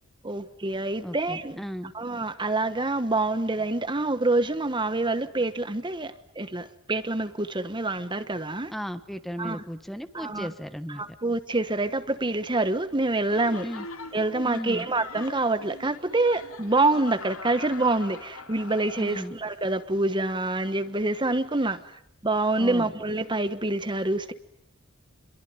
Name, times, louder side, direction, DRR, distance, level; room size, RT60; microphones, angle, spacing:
voice 1, 0.2-1.6 1.9-8.7 9.4-9.6 10.1-10.5 10.9-13.7 14.1-21.8 22.2-24.3, right 2 dB, 20° right, 1.1 m, -26 dB
voice 2, 1.0-1.9 8.7-11.0 13.6-13.9 14.4-14.9 19.0-19.3 22.6-22.9, equal, ahead, 1.2 m, -35 dB
Laughter, 13.3-19.6, left 3 dB, 85° left, 2.7 m, -42 dB
27.5 x 22.5 x 9.5 m
head